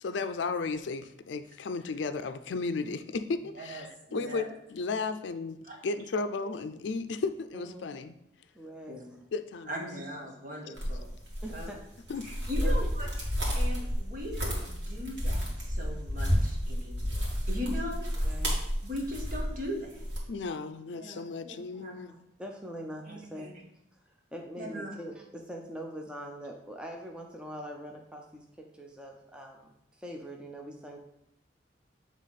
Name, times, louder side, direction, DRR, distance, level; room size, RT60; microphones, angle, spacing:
voice 1, 0.0-5.5 5.8-8.1 9.3-9.8 12.1-12.3 20.3-22.1, left 4 dB, 75° left, 10 dB, 0.4 m, -34 dB
voice 2, 3.5-4.5 5.7-5.8 8.9-9.0 9.7-11.1 11.5-11.7 12.2-13.1 13.5-18.3 18.8-20.0 20.9-22.1 23.0-23.5 24.6-24.9, equal, 45° right, -1 dB, 1.5 m, -39 dB
voice 3, 7.5-8.0 8.6-9.0 11.4-11.8 12.6-12.9 18.2-18.6 22.1-23.6 23.9-31.0, equal, 5° right, 1 dB, 0.6 m, -43 dB
sound 1, 10.8-20.2, equal, 65° right, 2.1 m, -31 dB
8.1 x 3.5 x 4.1 m, 0.78 s
head